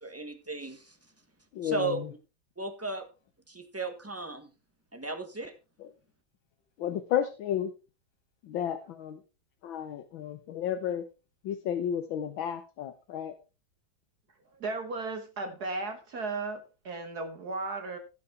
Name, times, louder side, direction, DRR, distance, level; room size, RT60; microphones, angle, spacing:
voice 1, 0.0-1.0 1.6-2.0 2.6-3.1 3.5-4.5 4.9-5.5, right 3 dB, 10° right, 8 dB, 1.1 m, -35 dB
voice 2, 1.5-2.1 5.8-5.9 6.8-7.7 8.4-9.2 9.6-11.0 11.4-13.3, left 9 dB, 80° left, 8 dB, 1.7 m, -32 dB
voice 3, 14.6-18.0, right 3 dB, 55° right, 6 dB, 1.8 m, -35 dB
16.0 x 5.9 x 4.5 m, 0.31 s
omnidirectional pair, 2.1 m